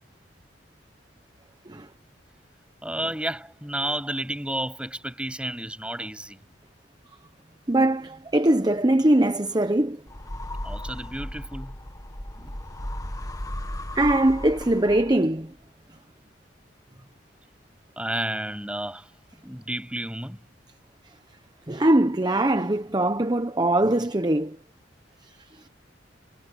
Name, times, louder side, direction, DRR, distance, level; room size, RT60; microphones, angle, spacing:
voice 1, 2.8-6.4 10.6-11.8 18.0-19.1 19.4-20.4, right 1 dB, 5° right, 7.5 m, -31 dB
voice 2, 7.7-10.0 13.9-15.5 21.7-24.6, right 1 dB, 25° right, 1.0 m, -21 dB
sound 1, 10.1-15.4, left 1 dB, 20° left, 1.7 m, -35 dB
head